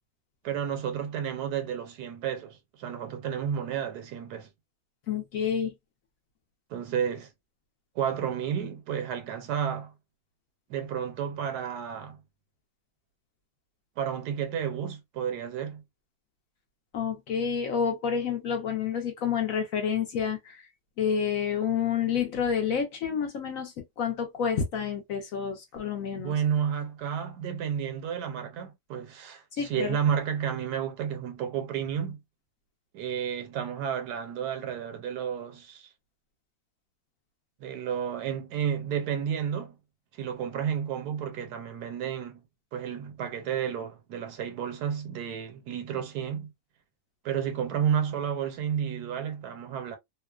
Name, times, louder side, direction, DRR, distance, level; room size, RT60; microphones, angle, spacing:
voice 1, 0.4-4.5 6.7-7.3 8.0-9.9 10.7-12.2 14.0-15.8 26.2-32.2 32.9-35.9 37.6-39.8 40.1-42.4 42.7-46.5 47.2-50.0, right 8 dB, 75° right, 1.2 m, -31 dB
voice 2, 5.1-5.7 16.9-20.6 21.0-26.3 29.6-30.0, left 7 dB, 65° left, 0.9 m, -29 dB
2.9 x 2.1 x 2.2 m
omnidirectional pair, 1.8 m